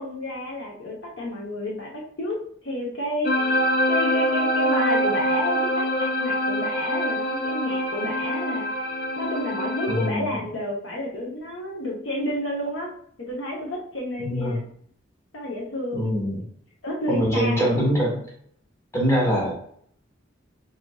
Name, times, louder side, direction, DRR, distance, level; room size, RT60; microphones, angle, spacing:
voice 1, 0.0-2.4 2.6-3.6 3.9-8.7 9.2-12.9 13.2-14.6 15.3-16.1 16.8-17.9, left 1 dB, 75° left, -1 dB, 0.8 m, -30 dB
sound 1, 3.2-10.1, equal, 50° left, 0.4 m, -24 dB
voice 2, 9.9-10.3 14.2-14.6 15.9-16.4 17.1-18.2 18.9-19.5, equal, 15° left, -5 dB, 1.3 m, -23 dB
5.1 x 2.5 x 2.3 m, 0.63 s
head